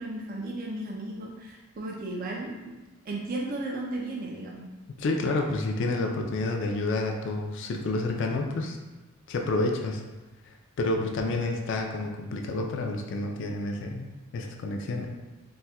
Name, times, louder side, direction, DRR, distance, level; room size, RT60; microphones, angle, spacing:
voice 1, 0.0-2.7 3.1-4.7, right 2 dB, 40° right, -1 dB, 0.3 m, -35 dB
voice 2, 5.0-8.8 9.3-10.0 10.8-15.1, left 2 dB, 55° left, 2 dB, 0.3 m, -29 dB
4.1 x 2.1 x 2.2 m, 1.2 s
head